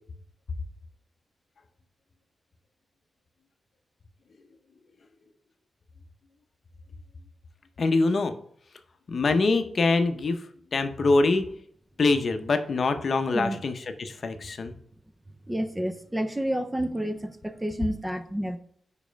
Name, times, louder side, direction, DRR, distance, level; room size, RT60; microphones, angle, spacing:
voice 1, 7.8-8.3 9.1-10.4 10.7-11.4 12.0-13.7 14.0-14.8, left 3 dB, 50° left, 8 dB, 0.7 m, -24 dB
voice 2, 15.5-18.6, equal, 5° right, 8 dB, 0.5 m, -29 dB
5.2 x 4.9 x 5.1 m, 0.64 s
wide cardioid pair, 150°, 0 cm